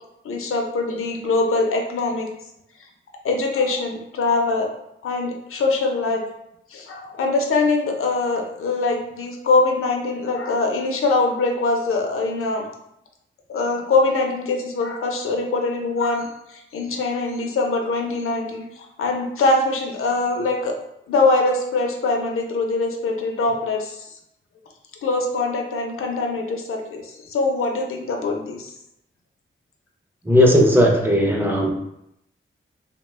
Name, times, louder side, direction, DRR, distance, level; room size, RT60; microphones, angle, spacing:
voice 1, 0.2-2.3 3.2-4.7 5.0-6.2 6.7-12.6 13.5-20.7 21.1-24.1 25.0-28.7, left 3 dB, 80° left, 2 dB, 0.5 m, -23 dB
voice 2, 30.3-31.7, equal, 10° right, 0 dB, 0.4 m, -16 dB
2.7 x 2.2 x 3.2 m, 0.81 s
wide cardioid pair, 165°, 21 cm